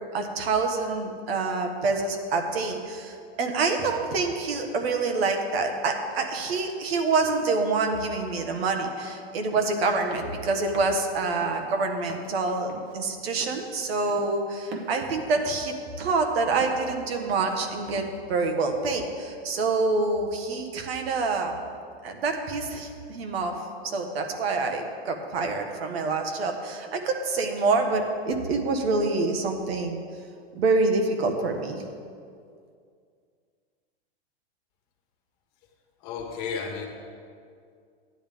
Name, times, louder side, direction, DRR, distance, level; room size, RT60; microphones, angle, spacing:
voice 1, 0.1-21.5 22.0-23.6 23.8-30.0 30.5-31.8, right 3 dB, 70° right, 4 dB, 1.5 m, -26 dB
sound 1, 9.5-9.7 10.1-10.4 10.7-11.0 11.4-11.6 12.1-12.3 12.7-12.9 13.4-13.7 14.1-14.3 14.7-15.0 15.4-15.7 16.0-16.3 16.6-16.9 17.3-17.6 17.9-18.2, right 3 dB, 30° right, 1.0 m, -42 dB
voice 2, 36.0-36.9, left 6 dB, 40° left, 2 dB, 1.5 m, -32 dB
12.5 x 10.0 x 3.6 m, 2.3 s
supercardioid pair, 155°, 32 cm